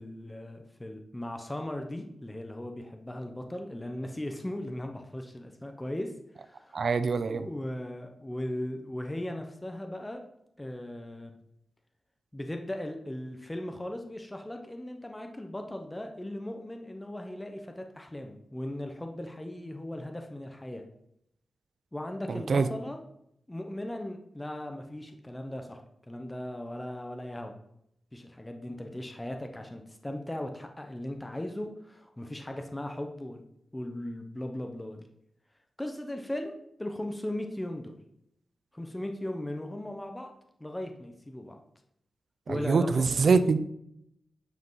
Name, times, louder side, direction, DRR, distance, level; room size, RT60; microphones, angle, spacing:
voice 1, 0.0-6.1 6.4-6.8 7.3-10.2 10.6-11.4 12.3-20.8 21.9-23.0 23.5-27.5 28.1-33.4 33.7-35.1 35.8-36.5 36.8-37.9 38.7-40.3 40.6-41.6 42.5-43.4, left 1 dB, 10° left, 4 dB, 0.9 m, -38 dB
voice 2, 6.7-7.5 22.3-22.7 42.5-43.6, right 4 dB, 55° right, 12 dB, 0.6 m, -24 dB
9.4 x 4.9 x 5.6 m, 0.75 s
wide cardioid pair, 130°, 0 cm